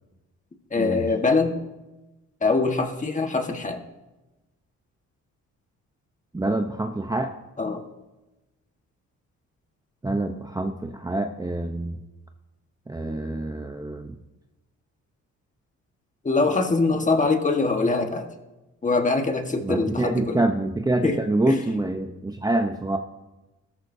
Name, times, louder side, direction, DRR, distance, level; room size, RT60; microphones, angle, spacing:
voice 1, 0.7-1.6 2.4-3.8 7.6-7.8 16.2-18.3 18.8-20.4 21.0-21.2 21.5-21.6, left 3 dB, 25° left, 4 dB, 1.5 m, -23 dB
voice 2, 6.3-7.3 10.0-12.0 12.9-14.1 19.6-23.0, right 2 dB, 15° right, 5 dB, 0.8 m, -26 dB
17.0 x 13.5 x 2.7 m, 1.1 s
cardioid pair, 90°, 30 cm